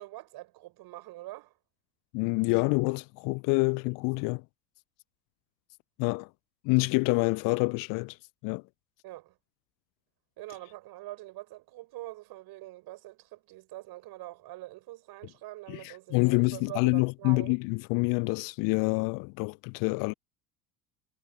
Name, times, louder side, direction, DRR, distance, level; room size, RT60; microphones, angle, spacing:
voice 1, 0.0-1.5 9.0-9.4 10.4-17.5, right 17 dB, 50° right, 5.1 m, -44 dB
voice 2, 2.1-4.4 6.0-6.3 6.6-8.2 8.4-8.6 15.7-20.1, left 30 dB, 45° left, 0.6 m, -27 dB
figure-of-eight pair, 70°, 47 cm